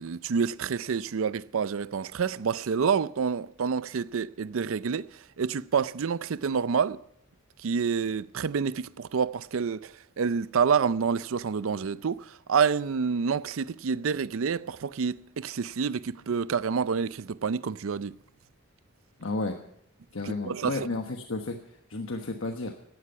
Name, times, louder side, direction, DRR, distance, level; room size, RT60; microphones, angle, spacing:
voice 1, 0.0-7.0 7.6-18.1 20.2-20.9, right 6 dB, 65° right, 0.5 m, -28 dB
voice 2, 19.2-19.6 20.1-21.6 21.9-22.7, left 2 dB, 65° left, 1.2 m, -32 dB
17.0 x 12.5 x 5.7 m
head